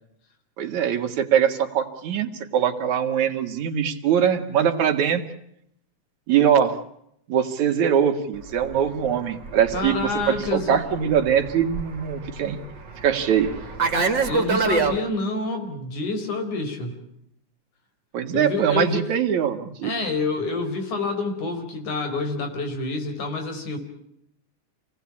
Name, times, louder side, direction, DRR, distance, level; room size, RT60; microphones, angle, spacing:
voice 1, 0.6-5.2 6.3-6.8 7.3-9.9 10.3-12.6 13.0-13.5 18.1-19.9, right 8 dB, 75° right, 7 dB, 3.2 m, -22 dB
Fixed-wing aircraft airplane, 8.5-15.0, right 4 dB, 40° right, 2.7 m, -27 dB
voice 2, 9.7-10.8 14.3-16.9 18.3-19.2 19.8-23.8, left 3 dB, 85° left, 6 dB, 5.9 m, -28 dB
28.0 x 18.5 x 8.6 m, 0.75 s
omnidirectional pair, 3.4 m